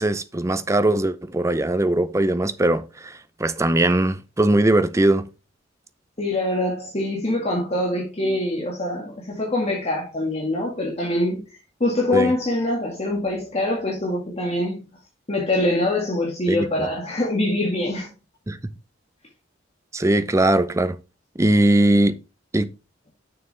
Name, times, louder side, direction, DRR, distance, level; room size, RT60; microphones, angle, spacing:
voice 1, 0.0-5.3 12.1-12.3 16.5-16.7 18.5-18.6 19.9-21.0 21.4-22.2 22.5-22.7, right 1 dB, 15° right, 0.5 m, -20 dB
voice 2, 6.2-14.8 15.3-18.1, left 1 dB, 30° left, 1.8 m, -24 dB
6.8 x 6.6 x 3.3 m
head